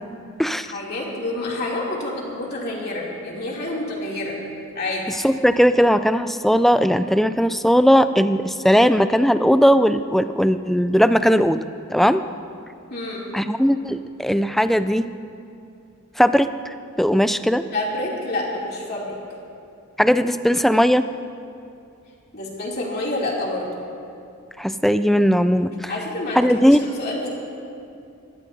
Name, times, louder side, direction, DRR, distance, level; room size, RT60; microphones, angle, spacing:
voice 1, 0.6-4.4 4.7-5.1 12.9-13.3 17.7-19.2 22.3-23.7 25.9-27.3, left 2 dB, 50° left, -4 dB, 3.0 m, -28 dB
voice 2, 5.2-11.6 11.9-12.2 13.3-15.1 16.2-17.6 20.0-21.1 24.6-25.9 26.3-26.8, equal, ahead, 11 dB, 0.3 m, -18 dB
22.5 x 18.0 x 2.8 m, 2.6 s
head